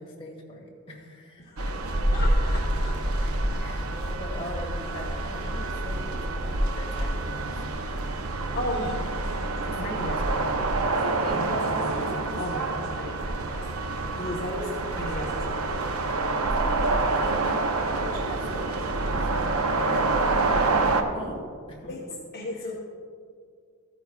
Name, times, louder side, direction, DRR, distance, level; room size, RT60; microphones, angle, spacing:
voice 1, 0.0-2.1 3.6-7.6 9.6-10.8 11.3-11.8 17.9-19.3 19.7-21.4 21.7-21.9, left 1 dB, 25° left, -1 dB, 1.5 m, -41 dB
voice 2, 1.4-1.8 2.1-3.3 8.5-10.1 11.2-17.1 21.9-22.0 22.3-22.8, left 1 dB, 45° left, -3 dB, 0.9 m, -36 dB
sound 1, 1.6-21.0, right 2 dB, 75° right, 0.7 m, -27 dB
14.0 x 9.0 x 2.3 m, 2.2 s
head